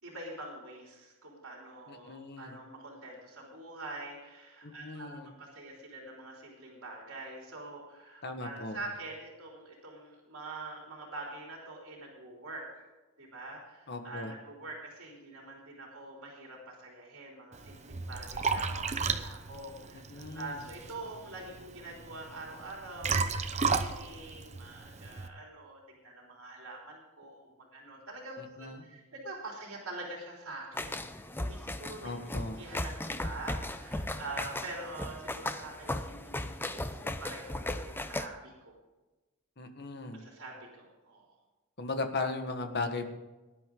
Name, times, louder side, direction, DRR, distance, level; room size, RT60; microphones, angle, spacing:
voice 1, 0.0-12.9 13.2-32.1 32.4-38.7 40.1-41.3, right 2 dB, 65° right, -2 dB, 3.5 m, -45 dB
voice 2, 1.9-2.6 4.6-5.3 8.2-8.8 13.9-14.3 20.1-20.6 28.4-28.8 32.0-32.6 39.6-40.2 41.8-43.1, left 3 dB, 50° left, 6 dB, 1.5 m, -37 dB
Liquid, 17.5-25.3, right 4 dB, 30° right, 0.8 m, -34 dB
sound 1, 30.7-38.3, left 1 dB, 10° left, 0.6 m, -37 dB
18.5 x 11.0 x 3.8 m, 1.1 s
head